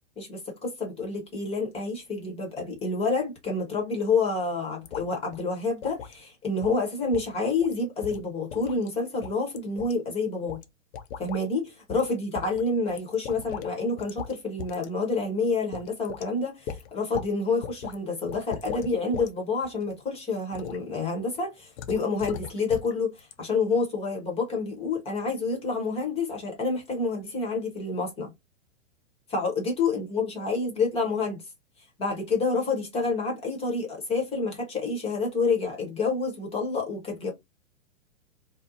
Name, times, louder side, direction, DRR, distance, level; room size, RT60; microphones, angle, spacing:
voice 1, 0.2-10.6 11.2-28.3 29.3-31.4 32.0-37.3, left 3 dB, 15° left, 0.8 m, -28 dB
sound 1, 4.8-5.1 5.3-5.4 5.8-6.2 6.6-6.8 7.1-7.3 7.6-7.8 8.0-8.9 9.2-9.9 10.5-10.7 10.9-11.4 11.9-12.1 12.4-13.7 14.0-14.3 14.6-14.9 15.2-15.3 15.7-16.3 16.7-17.3 17.6-17.9 18.3-19.3 19.6-19.9 20.5-20.8 21.8-22.9 23.2-23.3, left 8 dB, 55° left, 0.5 m, -38 dB
2.6 x 2.0 x 2.6 m
hypercardioid pair, 125°, 38 cm